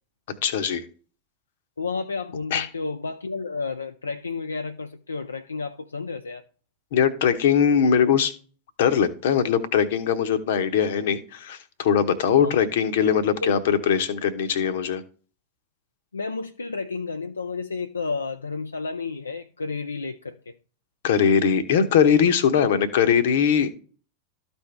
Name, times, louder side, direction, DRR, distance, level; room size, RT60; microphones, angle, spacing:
voice 1, 0.4-0.8 2.5-2.7 6.9-8.3 8.8-15.0 21.0-23.7, left 7 dB, 55° left, 0.9 m, -21 dB
voice 2, 1.8-6.4 12.4-12.6 13.4-13.6 16.1-20.6, left 4 dB, 75° left, 0.4 m, -31 dB
13.0 x 4.4 x 3.4 m
figure-of-eight pair, 90°, 0 cm